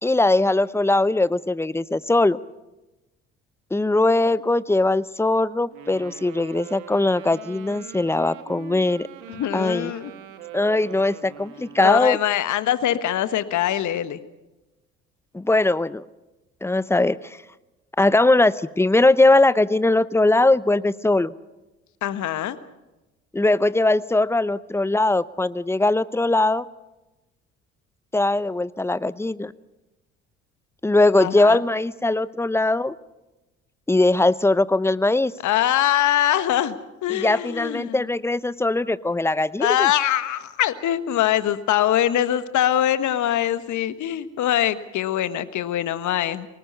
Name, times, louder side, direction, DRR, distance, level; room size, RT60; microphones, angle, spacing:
voice 1, 0.0-2.4 3.7-9.1 9.5-9.9 10.5-12.2 15.3-16.0 16.6-17.2 18.0-21.3 23.3-26.6 28.1-29.5 30.8-32.9 33.9-35.3 37.1-39.9, left 2 dB, 5° left, 18 dB, 0.7 m, -20 dB
Wind instrument woodwind instrument, 5.7-12.2, right 9 dB, 75° right, 2.2 m, -42 dB
voice 2, 9.3-10.1 11.8-14.2 22.0-22.6 31.2-31.6 35.4-36.7 37.0-38.0 39.6-46.5, left 11 dB, 55° left, 13 dB, 1.4 m, -23 dB
24.0 x 19.5 x 6.9 m, 1.0 s
hypercardioid pair, 55°, 35 cm